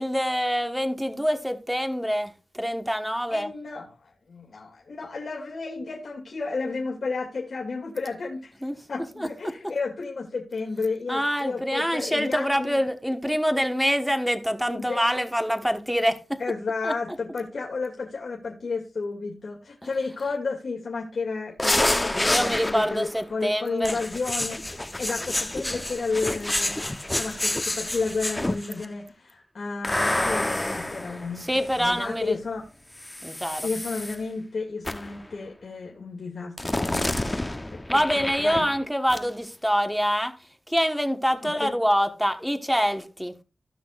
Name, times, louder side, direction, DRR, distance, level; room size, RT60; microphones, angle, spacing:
voice 1, 0.0-3.5 8.6-8.8 9.2-9.5 11.1-16.4 16.8-16.9 22.1-24.0 31.4-32.4 33.2-33.7 37.9-40.3 40.7-43.4, equal, 5° right, 1.2 m, -25 dB
voice 2, 3.3-8.6 8.9-12.8 14.7-15.1 16.4-26.9 27.2-32.6 33.6-38.7 41.4-41.7, left 4 dB, 75° left, 2.3 m, -32 dB
sound 1, 21.6-23.1 23.8-28.8 29.8-32.0 33.0-34.2 34.8-35.2 36.6-38.8 39.1-39.3, left 1 dB, 20° left, 0.8 m, -28 dB
16.5 x 6.0 x 2.4 m
wide cardioid pair, 80°, 0 cm